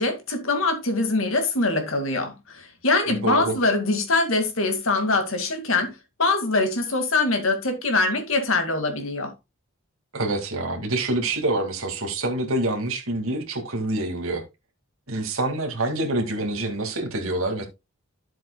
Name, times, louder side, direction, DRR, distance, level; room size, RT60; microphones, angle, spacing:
voice 1, 0.0-5.9 6.2-9.3, left 3 dB, 65° left, 2.1 m, -23 dB
voice 2, 3.1-3.5 10.1-14.4 15.1-17.7, right 2 dB, 70° right, 2.1 m, -26 dB
11.5 x 7.5 x 2.3 m
head